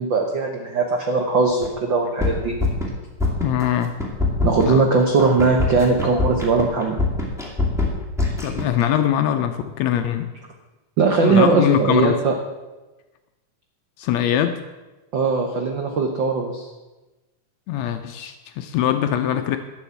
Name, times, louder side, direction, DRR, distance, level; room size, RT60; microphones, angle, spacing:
voice 1, 0.0-2.5 4.4-7.0 11.0-12.4 15.1-16.7, right 4 dB, 70° right, 3 dB, 1.1 m, -20 dB
sound 1, 1.6-1.7 2.0-2.9 3.2-3.7 4.0-8.8, left 3 dB, ahead, 1.7 m, -23 dB
voice 2, 3.4-4.0 4.7-4.9 8.4-10.3 11.2-12.2 14.0-14.6 17.7-19.6, left 10 dB, 75° left, 7 dB, 1.7 m, -22 dB
12.0 x 6.3 x 8.2 m, 1.1 s
omnidirectional pair, 3.6 m